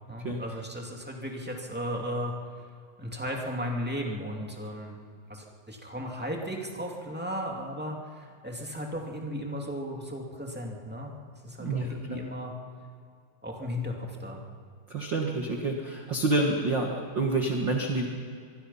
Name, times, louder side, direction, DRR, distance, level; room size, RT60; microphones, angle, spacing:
voice 1, 0.1-2.4 3.0-5.0 5.3-11.1 11.4-12.5 13.4-14.4, equal, 5° right, 0 dB, 1.5 m, -35 dB
voice 2, 11.6-12.2 14.9-16.9 17.1-18.0, right 2 dB, 45° right, 2 dB, 1.6 m, -28 dB
25.5 x 22.0 x 5.7 m, 2.3 s
omnidirectional pair, 4.4 m